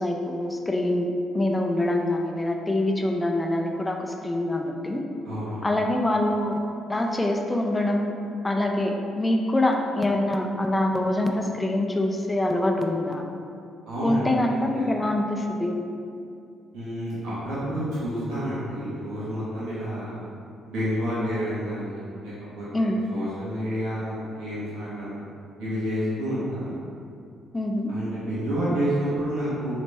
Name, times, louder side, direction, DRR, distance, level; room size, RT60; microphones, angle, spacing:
voice 1, 0.0-5.0 5.6-6.5 6.9-8.1 8.4-13.2 14.0-15.8 22.7-23.0 27.5-27.9, left 1 dB, 20° left, 2 dB, 0.5 m, -25 dB
voice 2, 5.2-5.7 13.9-14.9 16.7-20.2 20.7-25.2 25.6-26.7 27.9-29.8, equal, 70° right, -11 dB, 1.3 m, -29 dB
4.0 x 3.2 x 3.4 m, 2.6 s
hypercardioid pair, 50°, 0 cm